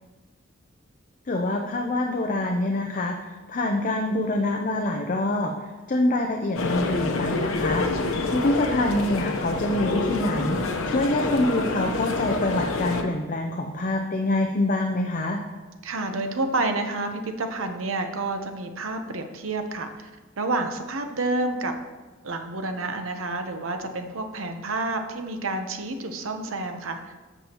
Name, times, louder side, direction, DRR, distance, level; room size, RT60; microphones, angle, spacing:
voice 1, 1.3-7.9 8.3-15.4, left 1 dB, 40° left, 2 dB, 0.6 m, -25 dB
sound 1, 6.5-13.0, left 3 dB, 85° left, 0.9 m, -27 dB
voice 2, 15.8-20.1 20.4-21.7 22.2-27.1, right 2 dB, 75° right, 6 dB, 0.9 m, -29 dB
13.0 x 7.0 x 3.0 m, 1.3 s
head